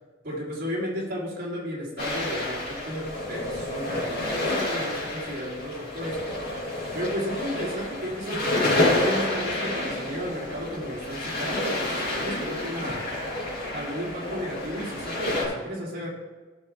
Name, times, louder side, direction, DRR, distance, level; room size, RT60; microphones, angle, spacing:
voice 1, 0.2-6.5 6.9-13.2 13.7-16.1, equal, 45° right, -6 dB, 2.9 m, -33 dB
sound 1, 2.0-15.4, left 1 dB, 45° left, 3.0 m, -29 dB
15.5 x 5.9 x 3.4 m, 1.3 s
head